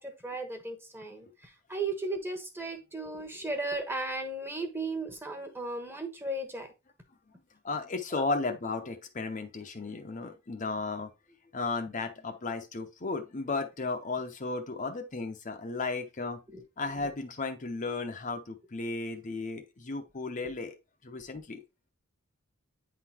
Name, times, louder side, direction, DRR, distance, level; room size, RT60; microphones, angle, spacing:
voice 1, 0.0-6.7 8.1-8.3 16.5-16.6 17.0-17.1, right 2 dB, 10° right, 1.1 m, -36 dB
voice 2, 7.6-11.1 11.5-16.4 16.8-20.8 21.0-21.6, left 3 dB, 35° left, 0.7 m, -34 dB
9.2 x 3.9 x 2.9 m
head